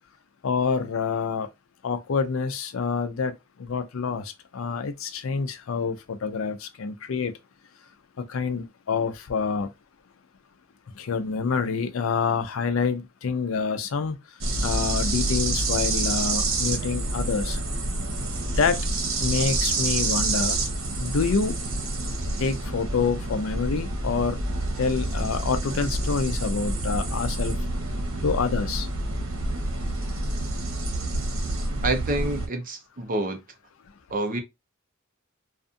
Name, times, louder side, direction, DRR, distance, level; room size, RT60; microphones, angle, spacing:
voice 1, 0.4-1.5 1.8-7.3 8.2-9.7 10.9-14.2 14.6-17.6 18.2-18.3 18.6-18.8 19.2-20.6 21.0-21.5 22.4-24.4 24.8-27.5 28.2-28.9, left 5 dB, 80° left, 0.5 m, -27 dB
sound 1, 14.4-32.5, right 2 dB, 90° right, 0.9 m, -28 dB
voice 2, 31.8-33.4 34.1-34.4, right 2 dB, 40° right, 0.6 m, -27 dB
2.5 x 2.4 x 2.5 m
head